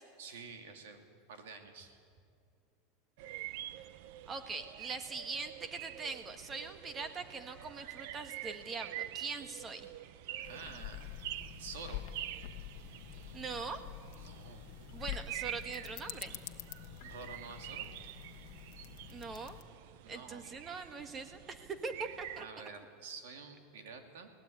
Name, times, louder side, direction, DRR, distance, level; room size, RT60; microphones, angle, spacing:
voice 1, 0.2-2.0 10.3-11.1 11.4-12.1 14.2-14.6 17.0-17.9 20.0-20.5 22.4-24.3, right 5 dB, 85° right, 5 dB, 3.0 m, -49 dB
sound 1, 3.2-22.4, right 13 dB, 65° right, 0.7 m, -47 dB
voice 2, 4.3-9.8 13.3-13.8 14.9-16.3 19.1-19.6 20.1-22.4, right 4 dB, 20° right, 9 dB, 1.6 m, -42 dB
sound 2, 10.4-19.6, left 13 dB, 60° left, 1.2 m, -47 dB
22.0 x 18.5 x 9.0 m, 2.3 s
supercardioid pair, 155°, 0 cm